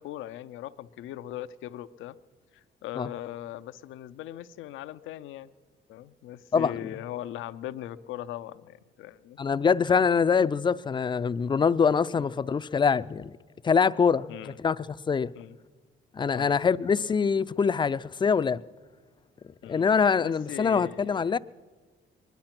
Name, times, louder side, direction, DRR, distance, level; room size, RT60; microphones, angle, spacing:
voice 1, 0.0-2.1 2.5-5.5 5.9-9.4 12.2-12.3 14.3-14.6 15.3-15.6 16.3-16.7 19.6-21.4, left 12 dB, 85° left, 0.5 m, -40 dB
voice 2, 9.4-13.3 13.6-14.4 14.6-15.3 16.1-18.6 19.7-21.4, left 6 dB, 25° left, 0.4 m, -24 dB
22.0 x 10.5 x 5.9 m
cardioid pair, 90°, 20 cm